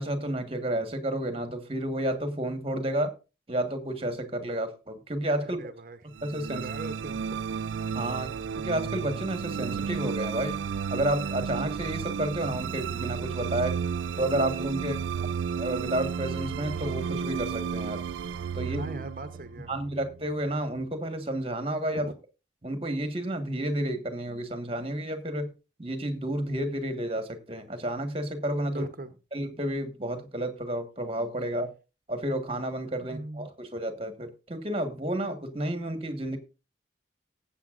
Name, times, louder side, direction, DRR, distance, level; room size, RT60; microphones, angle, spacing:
voice 1, 0.0-3.1 3.5-5.6 6.2-6.6 7.9-10.6 10.9-13.8 14.2-15.3 15.6-18.0 18.5-19.0 19.7-22.1 22.6-25.5 25.8-28.8 29.3-31.7 32.1-36.4, right 1 dB, 30° right, 7 dB, 1.5 m, -31 dB
voice 2, 5.4-6.0 6.4-7.3 14.7-15.3 18.6-19.7 21.9-22.1 28.6-29.1 33.1-33.5, right 2 dB, 50° right, 10 dB, 0.9 m, -40 dB
sound 1, 6.1-20.5, right 6 dB, 85° right, 0.4 m, -33 dB
18.5 x 8.1 x 2.5 m, 0.30 s
head